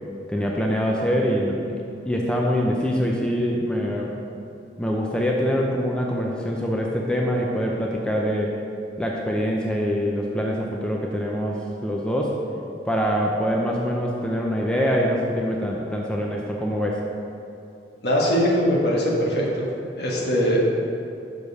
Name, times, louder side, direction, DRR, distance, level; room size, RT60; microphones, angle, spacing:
voice 1, 0.3-4.2 4.8-8.5 9.0-12.4 12.9-17.0, equal, 5° left, -2 dB, 0.5 m, -24 dB
voice 2, 18.0-19.7 20.0-20.6, equal, 65° left, -3 dB, 1.4 m, -21 dB
6.3 x 5.2 x 5.3 m, 2.7 s
head